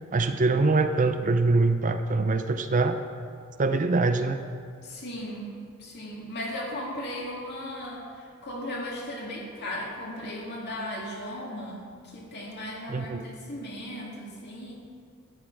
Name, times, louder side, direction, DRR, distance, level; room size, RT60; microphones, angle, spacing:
voice 1, 0.1-3.0 3.6-4.4 12.9-13.2, right 3 dB, 35° right, 8 dB, 0.5 m, -24 dB
voice 2, 4.8-14.7, left 1 dB, 50° left, -3 dB, 2.5 m, -37 dB
12.5 x 10.0 x 4.8 m, 2.2 s
head